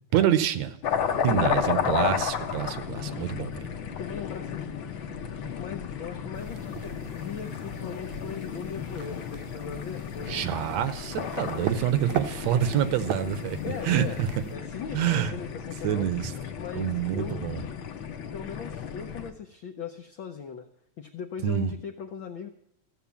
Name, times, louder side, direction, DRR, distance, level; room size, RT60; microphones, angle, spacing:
voice 1, 0.1-0.7 1.2-3.7 10.3-13.6 13.8-14.3 14.9-15.3 15.8-16.3 16.8-17.6 21.4-21.7, right 10 dB, 75° right, 13 dB, 1.9 m, -26 dB
sound 1, 0.8-19.3, left 7 dB, 60° left, 1.4 m, -33 dB
voice 2, 4.0-4.7 4.9-5.0 5.6-10.4 11.4-11.7 13.6-14.2 14.5-16.1 16.6-17.4 18.3-20.7 21.0-22.5, left 7 dB, 75° left, 5 dB, 1.1 m, -39 dB
sound 2, 6.3-14.6, right 8 dB, 90° right, 2.5 m, -39 dB
15.0 x 7.9 x 7.0 m, 0.74 s
omnidirectional pair, 3.3 m